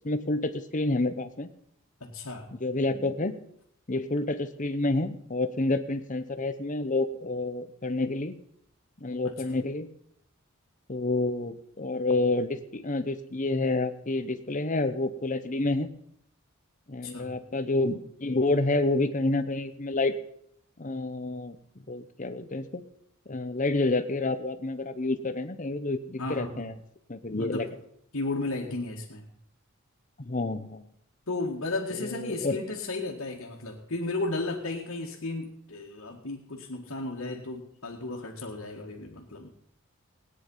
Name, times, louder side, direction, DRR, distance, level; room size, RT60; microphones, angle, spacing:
voice 1, 0.0-1.5 2.5-3.4 3.9-8.4 9.0-9.9 10.9-15.9 16.9-20.1 20.8-21.6 21.9-22.8 23.3-26.7 27.1-27.7 30.2-30.8 32.0-32.6, left 2 dB, 35° left, 11 dB, 1.0 m, -29 dB
voice 2, 2.0-2.5 9.2-9.6 17.0-17.3 26.2-26.7 27.4-27.7 28.1-29.3 31.3-39.5, left 2 dB, 75° left, -4 dB, 2.0 m, -34 dB
17.5 x 9.8 x 5.6 m, 0.72 s
head